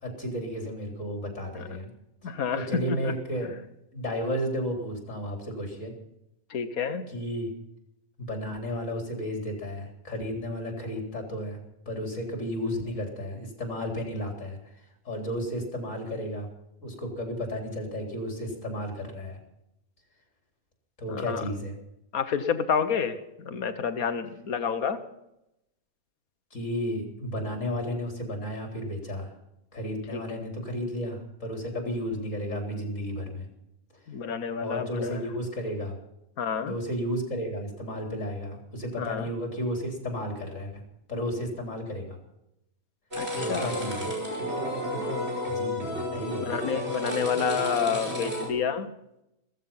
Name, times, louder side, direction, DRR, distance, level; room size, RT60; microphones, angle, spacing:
voice 1, 0.0-1.9 2.2-3.5 3.9-5.9 7.1-7.5 8.2-11.6 11.9-14.6 15.1-16.5 16.8-19.4 21.0-21.7 26.5-29.3 29.7-33.5 34.6-36.0 36.6-40.8 41.1-42.2 43.4-44.1 45.5-46.5, equal, 60° left, 3 dB, 4.1 m, -33 dB
voice 2, 2.2-3.1 6.5-7.0 21.1-21.4 22.1-23.2 23.4-25.0 30.1-30.2 34.1-35.2 36.4-36.8 39.0-39.3 43.2-43.8 44.9-45.4 46.4-48.9, left 6 dB, 90° left, 11 dB, 1.6 m, -29 dB
sound 1, 43.1-48.5, equal, 50° right, 5.1 m, -31 dB
15.5 x 15.0 x 5.6 m, 0.85 s
omnidirectional pair, 1.5 m